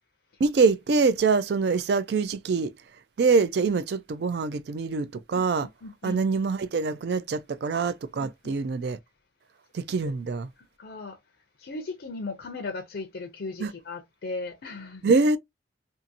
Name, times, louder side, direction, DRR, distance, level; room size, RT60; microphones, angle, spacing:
voice 1, 0.4-2.7 3.2-5.7 6.0-9.0 9.7-10.5 13.6-13.7 15.0-15.4, right 4 dB, 60° right, 0.3 m, -24 dB
voice 2, 5.3-6.2 8.2-8.5 10.0-10.1 10.8-11.2 11.6-15.1, left 3 dB, 70° left, 0.5 m, -37 dB
2.6 x 2.5 x 2.6 m
head